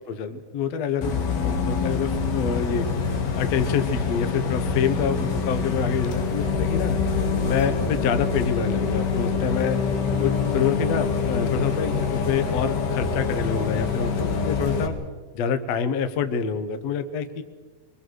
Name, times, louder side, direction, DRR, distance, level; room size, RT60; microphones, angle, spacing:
voice 1, 0.1-1.1 1.4-2.8 3.4-7.0 7.5-9.8 10.2-15.0 15.3-17.4, left 6 dB, 65° left, 9 dB, 1.8 m, -27 dB
Bus, 1.0-14.9, left 5 dB, 80° left, 4.1 m, -25 dB
sound 1, 6.4-10.5, equal, 40° left, 2.9 m, -41 dB
24.0 x 22.5 x 6.4 m, 1.5 s
omnidirectional pair, 4.4 m